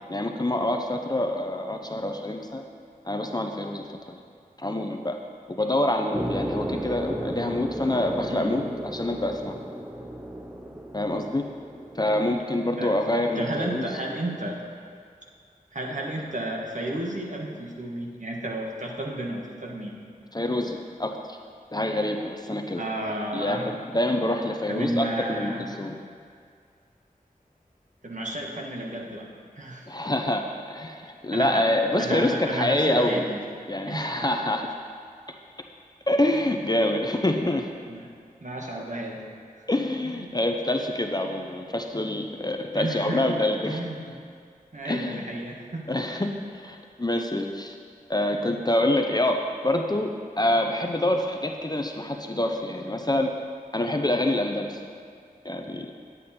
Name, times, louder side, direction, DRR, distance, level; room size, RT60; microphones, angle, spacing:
voice 1, 0.1-2.6 3.0-4.1 4.6-5.2 5.6-9.6 10.9-11.4 11.9-13.8 20.3-21.4 21.7-22.8 23.3-25.9 29.9-33.3 33.7-34.7 36.1-37.7 39.7-43.8 44.8-45.3 45.9-47.8 48.1-53.3 53.7-54.8 55.4-55.9, left 1 dB, 25° left, 3 dB, 0.6 m, -26 dB
sound 1, 6.1-12.4, right 1 dB, 10° right, 0.7 m, -35 dB
voice 2, 8.3-8.6 12.8-13.0 13.3-14.6 15.7-20.0 22.8-23.6 24.7-26.0 28.0-29.3 29.6-29.9 31.3-31.7 32.0-33.4 33.8-34.2 37.9-38.1 38.4-39.2 40.0-40.4 42.7-44.1 44.7-45.9 46.2-46.3, right 1 dB, 55° right, -1 dB, 1.4 m, -32 dB
10.0 x 8.4 x 4.3 m, 2.2 s
wide cardioid pair, 55°, 15 cm